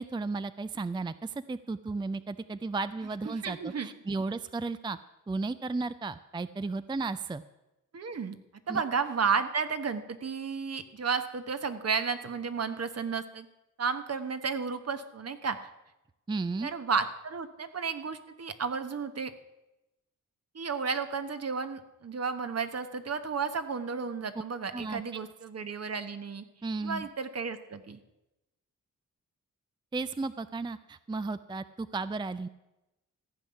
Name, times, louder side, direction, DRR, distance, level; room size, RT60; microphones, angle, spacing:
voice 1, 0.0-5.0 5.3-7.4 8.7-8.8 16.3-16.7 24.7-25.2 26.6-27.1 29.9-32.5, right 3 dB, 15° right, 13 dB, 0.4 m, -34 dB
voice 2, 3.2-3.9 7.9-8.4 8.7-13.5 13.8-15.6 16.6-19.3 20.5-26.4 26.8-28.0, right 5 dB, 50° right, 10 dB, 1.2 m, -32 dB
15.0 x 5.5 x 9.7 m, 0.97 s
cardioid pair, 75°, 32 cm